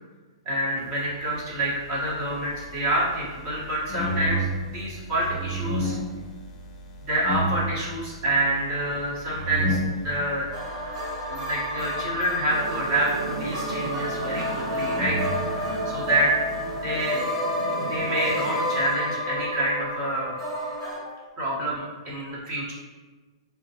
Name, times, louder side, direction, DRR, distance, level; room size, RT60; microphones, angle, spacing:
voice 1, 0.4-4.5 4.7-5.9 7.1-9.8 10.0-10.5 11.3-15.2 15.5-16.3 16.8-17.2 17.9-20.4 21.4-22.7, right 1 dB, 30° right, -7 dB, 1.4 m, -27 dB
sound 1, 1.6-17.0, equal, 25° left, 0.6 m, -34 dB
sound 2, 10.5-21.0, left 1 dB, 5° left, 1.4 m, -32 dB
sound 3, 12.5-18.8, right 1 dB, 60° right, 0.7 m, -32 dB
6.2 x 2.3 x 2.9 m, 1.3 s
hypercardioid pair, 165°, 3 cm